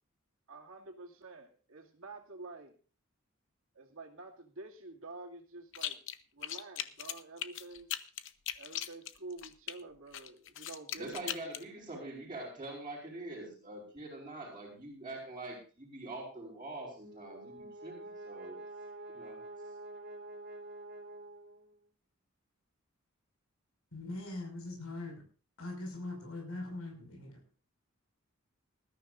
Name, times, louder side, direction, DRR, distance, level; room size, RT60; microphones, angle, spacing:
voice 1, 0.5-2.7 3.8-6.0 6.3-7.9 8.6-11.4, right 3 dB, 70° right, 2 dB, 2.4 m, -49 dB
sound 1, 5.7-6.2 6.4-9.7 10.1-11.6, left 11 dB, 60° left, 0.9 m, -39 dB
voice 2, 11.0-18.6 19.1-19.4, right 2 dB, 20° right, -6 dB, 4.9 m, -44 dB
Brass instrument, 16.8-21.8, right 2 dB, 50° right, 3.1 m, -47 dB
voice 3, 23.9-25.2 25.6-27.4, left 2 dB, 80° left, 2 dB, 5.7 m, -41 dB
20.0 x 13.0 x 2.6 m, 0.37 s
head